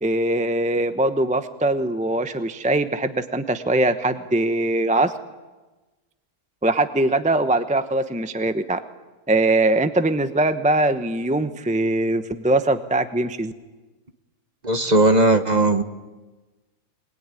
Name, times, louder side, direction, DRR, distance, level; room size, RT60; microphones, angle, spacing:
voice 1, 0.0-5.1 6.6-8.8 9.3-13.5, right 2 dB, 5° right, 10 dB, 0.7 m, -21 dB
voice 2, 14.6-15.8, right 2 dB, 30° right, 9 dB, 1.1 m, -17 dB
24.5 x 20.5 x 9.8 m, 1.2 s
omnidirectional pair, 1.6 m